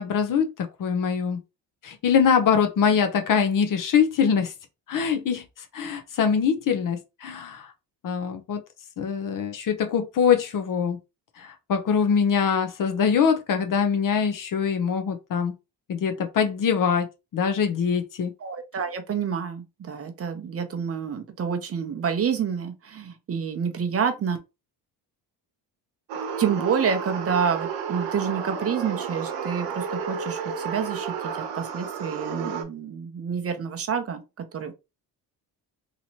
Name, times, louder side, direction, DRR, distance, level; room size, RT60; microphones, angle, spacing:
voice 1, 0.0-1.4 1.8-4.5 4.9-5.4 5.7-7.7 8.0-8.6 9.0-11.0 11.4-15.5 15.9-17.1 17.3-18.3, left 7 dB, 50° left, 0.7 m, -23 dB
voice 2, 18.4-24.4 26.4-34.7, right 7 dB, 35° right, 0.6 m, -28 dB
sound 1, 26.1-32.6, right 6 dB, 90° right, 0.8 m, -32 dB
3.0 x 2.8 x 2.8 m
cardioid pair, 120°, 42 cm